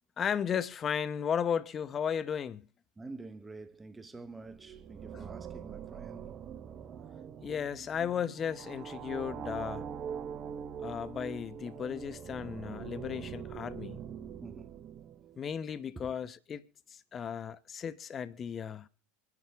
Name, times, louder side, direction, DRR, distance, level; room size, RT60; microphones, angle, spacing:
voice 1, 0.2-2.7 5.1-5.2 7.4-9.9 10.8-14.0 15.4-16.6 16.9-18.9, left 8 dB, 30° left, 0.8 m, -35 dB
voice 2, 3.0-6.3 14.4-14.7 15.9-16.1, right 3 dB, 15° right, 1.0 m, -47 dB
sound 1, 4.4-15.6, right 8 dB, 40° right, 0.9 m, -43 dB
25.5 x 11.0 x 3.5 m
hypercardioid pair, 100°, 0 cm